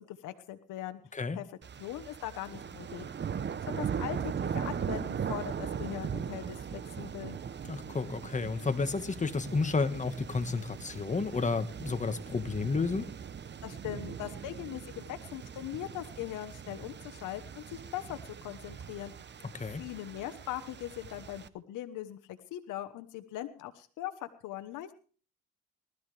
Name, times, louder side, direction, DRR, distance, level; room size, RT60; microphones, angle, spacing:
voice 1, 0.0-1.0 1.3-1.4 1.8-3.0 3.7-7.4 13.6-19.1 19.6-24.9, left 13 dB, 90° left, 9 dB, 1.1 m, -40 dB
sound 1, 1.6-21.5, right 7 dB, 35° right, 0.8 m, -39 dB
voice 2, 7.6-13.1 19.5-19.8, left 4 dB, 25° left, 9 dB, 1.4 m, -31 dB
19.5 x 13.0 x 3.3 m, 0.40 s
cardioid pair, 90°, 30 cm